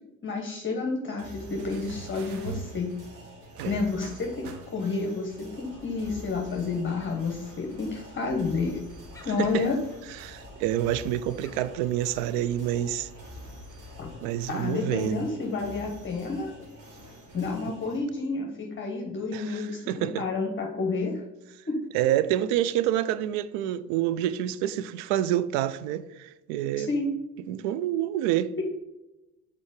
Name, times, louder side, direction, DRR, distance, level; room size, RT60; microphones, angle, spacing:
voice 1, 0.2-2.9 3.6-8.8 9.2-9.8 14.0-14.1 14.5-16.5 17.3-21.2 21.7-21.8 26.8-27.1, left 3 dB, 25° left, 1.0 m, -30 dB
sound 1, 1.2-18.0, equal, 45° right, 2.1 m, -47 dB
sound 2, 1.6-5.1 6.3-6.4, right 4 dB, 85° right, 0.9 m, -43 dB
Gull seagull, 5.5-14.5, left 2 dB, 5° left, 1.5 m, -50 dB
voice 2, 10.2-13.1 14.2-15.3 19.3-20.2 21.9-26.9 27.5-28.5, right 12 dB, 65° right, 0.5 m, -27 dB
5.3 x 4.1 x 5.0 m
hypercardioid pair, 70°, 44 cm